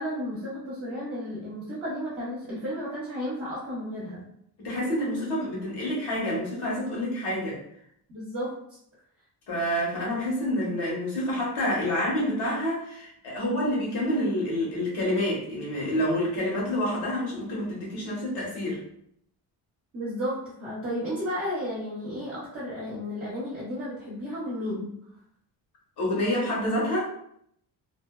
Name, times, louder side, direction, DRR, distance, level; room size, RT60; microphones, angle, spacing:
voice 1, 0.0-4.2 8.1-8.6 19.9-24.9, equal, 35° right, -8 dB, 0.7 m, -33 dB
voice 2, 4.6-7.6 9.5-18.8 26.0-27.0, left 1 dB, 85° left, -4 dB, 1.2 m, -28 dB
2.6 x 2.2 x 2.2 m, 0.71 s
cardioid pair, 175°, 39 cm